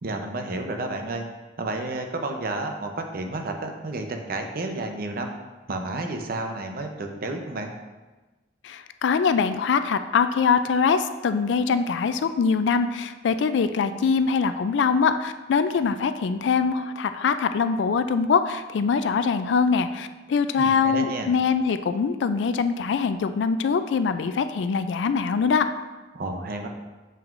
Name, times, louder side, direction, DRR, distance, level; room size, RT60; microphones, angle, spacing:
voice 1, 0.0-1.2 1.6-5.3 5.7-7.7 20.6-21.3 26.1-26.7, right 2 dB, 55° right, 4 dB, 0.7 m, -31 dB
voice 2, 8.6-25.7, left 5 dB, 75° left, 10 dB, 0.3 m, -23 dB
7.0 x 5.8 x 2.5 m, 1.2 s
head